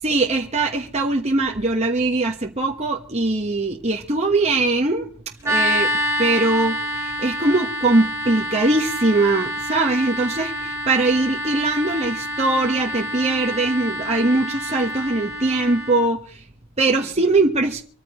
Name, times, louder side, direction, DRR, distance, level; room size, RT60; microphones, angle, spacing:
voice 1, 0.0-5.1 5.4-5.9 6.2-16.4 16.8-17.8, right 2 dB, 30° right, 1.3 m, -21 dB
sound 1, 5.4-16.0, equal, 15° right, 1.8 m, -27 dB
25.0 x 14.5 x 3.1 m
head